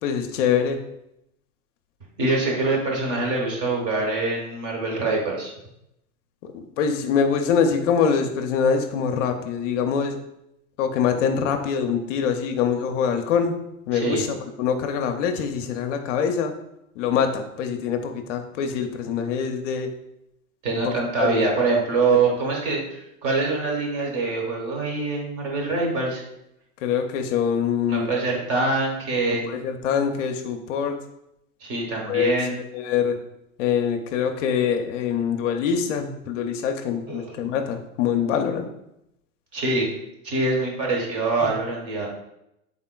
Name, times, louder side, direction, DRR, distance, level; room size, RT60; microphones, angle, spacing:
voice 1, 0.0-0.8 6.5-10.2 10.8-13.6 13.9-16.5 17.0-19.9 21.2-21.5 22.1-22.2 26.8-28.1 29.5-31.0 32.1-33.2 33.6-38.7, left 7 dB, 60° left, 5 dB, 0.5 m, -24 dB
voice 2, 2.2-5.5 13.9-14.2 20.6-26.2 27.9-29.5 31.6-32.6 37.1-37.4 39.5-39.9 40.2-42.1, right 3 dB, 35° right, 0 dB, 1.1 m, -24 dB
3.7 x 3.6 x 2.2 m, 0.84 s
hypercardioid pair, 115°, 43 cm